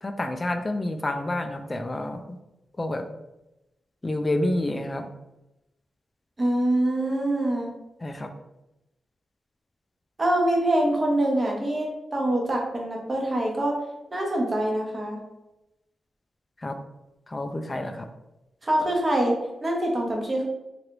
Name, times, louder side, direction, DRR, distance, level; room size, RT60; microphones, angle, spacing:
voice 1, 0.0-2.4 2.8-3.0 4.0-5.1 8.0-8.3 16.6-16.7 17.3-18.1, left 1 dB, 25° left, 6 dB, 0.3 m, -29 dB
voice 2, 6.4-7.7 10.2-13.7 14.1-15.2 18.6-20.5, right 1 dB, 30° right, -1 dB, 0.8 m, -24 dB
3.2 x 2.5 x 2.9 m, 0.94 s
cardioid pair, 90°, 0 cm